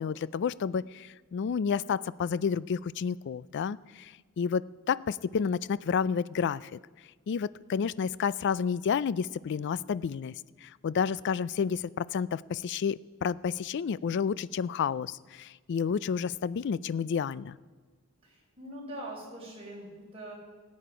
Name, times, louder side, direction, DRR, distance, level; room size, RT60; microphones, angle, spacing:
voice 1, 0.0-6.8 7.3-10.3 10.6-17.6, left 6 dB, 55° left, 20 dB, 0.3 m, -30 dB
voice 2, 18.2-20.3, right 1 dB, 30° right, -3 dB, 4.6 m, -43 dB
18.0 x 8.6 x 5.0 m, 1.4 s
head